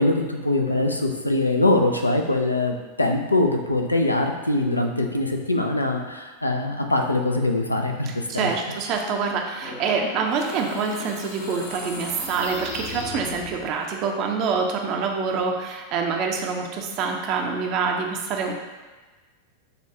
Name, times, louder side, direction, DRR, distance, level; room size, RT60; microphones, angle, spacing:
voice 1, 0.0-8.5, left 2 dB, 85° left, 3 dB, 0.4 m, -23 dB
voice 2, 8.1-18.5, right 5 dB, 40° right, 2 dB, 0.6 m, -26 dB
sound 1, 9.5-13.8, left 3 dB, 50° left, 0.9 m, -37 dB
6.6 x 2.4 x 2.8 m, 1.3 s
figure-of-eight pair, 90°, 0 cm